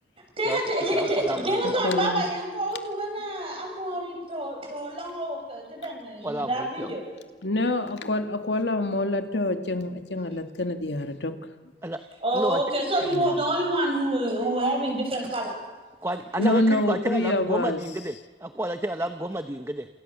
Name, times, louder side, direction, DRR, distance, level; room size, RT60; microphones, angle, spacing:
voice 1, 0.4-7.0 12.2-15.6, right 1 dB, 30° right, 1 dB, 7.6 m, -27 dB
voice 2, 0.9-1.8 6.2-6.9 11.8-12.0 12.3-12.6 16.0-19.9, right 1 dB, 15° right, 8 dB, 0.8 m, -30 dB
voice 3, 1.8-2.2 7.4-11.4 13.1-13.3 16.4-17.8, left 1 dB, 85° left, 6 dB, 2.2 m, -26 dB
29.0 x 27.5 x 7.0 m, 1.4 s
head